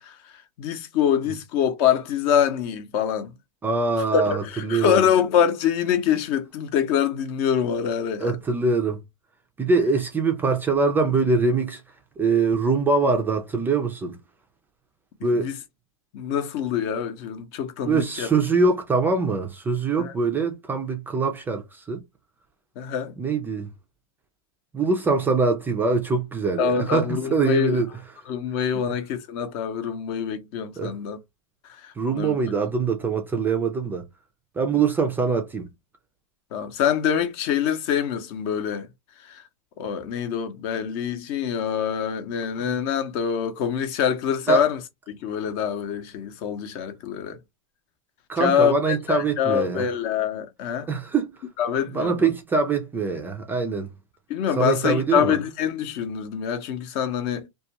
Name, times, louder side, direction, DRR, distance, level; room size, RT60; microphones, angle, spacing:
voice 1, 0.0-3.3 4.1-8.4 15.3-15.6 16.1-18.3 20.0-20.1 22.8-23.1 26.6-27.8 28.3-31.2 31.8-32.4 36.5-38.9 39.2-39.4 39.8-44.8 45.1-47.4 48.4-50.9 51.6-52.3 54.3-57.5, left 8 dB, 45° left, 0.7 m, -25 dB
voice 2, 3.6-5.0 8.2-9.0 9.6-11.8 12.2-14.2 15.2-15.5 17.8-22.0 23.2-23.7 24.7-27.9 30.8-31.0 32.0-34.1 34.6-35.7 42.6-42.7 44.5-44.6 48.3-49.9 50.9-51.4 51.9-53.9 54.6-55.3, right 4 dB, 10° right, 0.4 m, -23 dB
2.4 x 2.3 x 2.8 m
hypercardioid pair, 130°, 18 cm